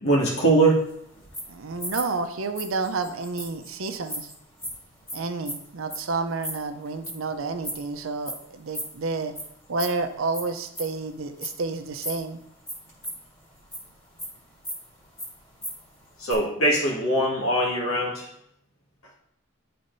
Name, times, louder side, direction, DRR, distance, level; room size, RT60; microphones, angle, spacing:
voice 1, 0.0-0.8 16.2-18.2, right 2 dB, 90° left, -2 dB, 1.7 m, -21 dB
sound 1, 0.6-7.9 8.2-8.4 8.7-9.4 9.7-12.2 12.6-13.9 14.2-15.8 16.1-16.3, equal, 15° left, 1.5 m, -36 dB
voice 2, 1.5-4.3 5.1-9.3 9.7-12.4, right 3 dB, 80° right, 7 dB, 0.6 m, -30 dB
10.5 x 4.2 x 2.7 m, 0.73 s
head